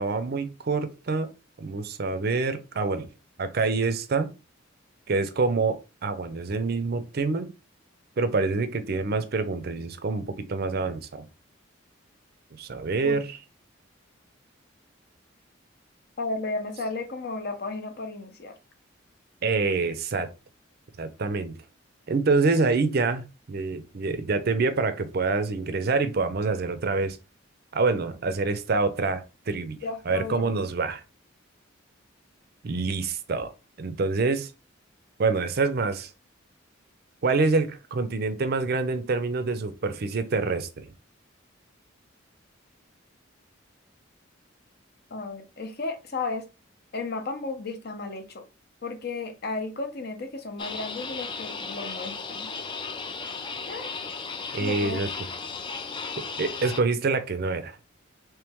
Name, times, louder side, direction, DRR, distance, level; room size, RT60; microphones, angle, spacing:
voice 1, 0.0-1.3 1.6-3.1 3.4-4.3 5.1-5.8 6.0-7.5 8.2-11.3 12.6-13.4 19.4-20.3 21.0-21.5 22.1-27.2 27.7-29.8 30.1-31.0 32.6-33.5 33.8-34.5 35.2-36.1 37.2-40.9 54.5-55.1 56.4-57.8, right 4 dB, 50° right, 0.5 m, -26 dB
voice 2, 16.2-18.5 29.8-30.7 45.1-46.5 46.9-48.4 48.8-52.5 53.7-53.9 54.6-55.0, left 3 dB, 50° left, 0.7 m, -34 dB
sound 1, 50.6-56.8, left 4 dB, 25° left, 0.3 m, -35 dB
3.2 x 3.0 x 3.5 m
head